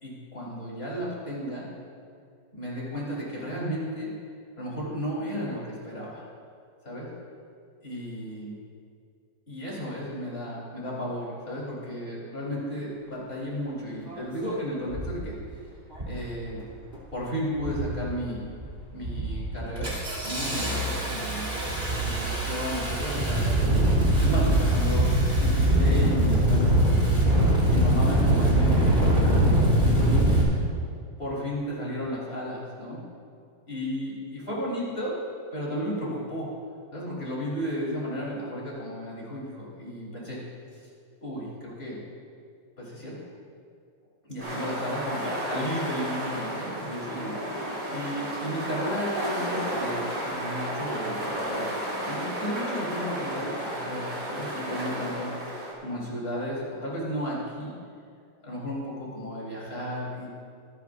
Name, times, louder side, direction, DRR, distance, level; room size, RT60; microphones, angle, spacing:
voice 1, 0.0-1.7 2.5-4.1 4.6-6.3 6.8-7.1 7.8-8.6 9.5-15.4 16.0-16.6 17.1-18.4 18.9-19.9 20.2-23.5 24.2-27.4 27.7-30.4 31.2-33.0 33.7-35.1 35.5-36.5 36.9-40.4 41.2-42.0 42.8-43.3 44.2-51.7 52.1-55.3 55.8-57.7 58.4-60.3, equal, 30° left, -6 dB, 4.4 m, -34 dB
Engine starting, 14.1-14.2 14.9-15.2 15.9-16.3 16.6-17.1 17.6-18.1 18.5-18.7 19.0-30.4, right 1 dB, 30° right, 3.5 m, -23 dB
sound 1, 44.4-55.7, equal, 65° right, 3.8 m, -32 dB
25.0 x 10.5 x 2.7 m, 2.3 s
omnidirectional pair, 1.9 m